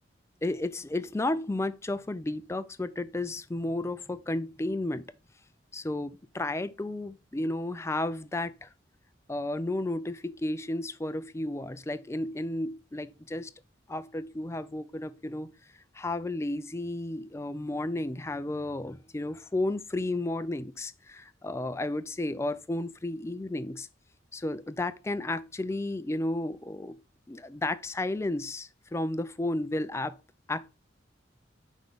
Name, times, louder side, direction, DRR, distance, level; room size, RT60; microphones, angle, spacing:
voice 1, 0.4-5.0 5.7-8.7 9.3-13.5 13.9-15.5 15.9-23.9 24.3-27.0 27.3-30.1 30.5-30.7, left 2 dB, 15° left, 0.4 m, -32 dB
5.7 x 3.6 x 5.3 m
head